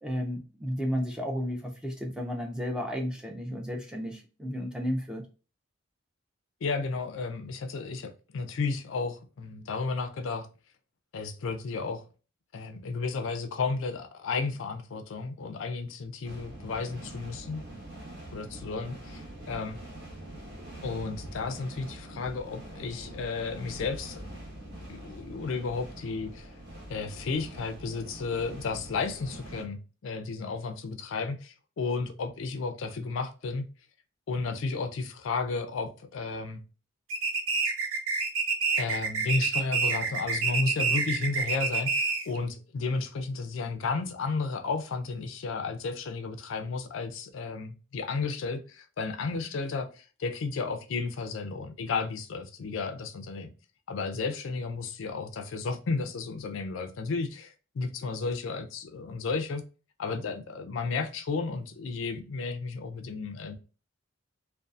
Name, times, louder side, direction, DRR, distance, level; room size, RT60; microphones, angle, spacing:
voice 1, 0.0-5.3, equal, 5° right, 0.3 m, -33 dB
voice 2, 6.6-10.5 11.1-12.0 12.5-17.6 18.3-19.2 19.5-19.8 20.8-24.2 24.9-26.5 26.9-33.6 34.3-36.6 38.8-53.5 53.9-59.6 60.0-63.6, left 4 dB, 75° left, 0.4 m, -33 dB
sound 1, 16.2-29.6, right 1 dB, 55° right, 0.9 m, -44 dB
sound 2, 37.1-42.4, right 4 dB, 90° right, 0.4 m, -28 dB
2.5 x 2.3 x 2.3 m
head